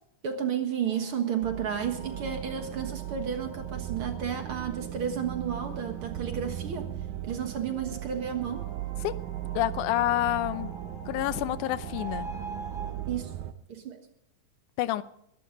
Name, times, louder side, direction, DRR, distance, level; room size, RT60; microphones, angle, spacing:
voice 1, 0.2-6.9 7.2-8.6 13.1-13.3 13.7-14.0, right 8 dB, 55° right, 2.0 m, -32 dB
sound 1, 0.9-6.2 7.7-12.9, right 2 dB, 5° left, 2.8 m, -46 dB
sound 2, 1.4-13.5, right 13 dB, 80° right, 2.2 m, -37 dB
voice 2, 9.5-10.7 11.1-12.3 14.8-15.0, left 15 dB, 85° left, 2.2 m, -28 dB
22.5 x 11.5 x 3.8 m
omnidirectional pair, 3.5 m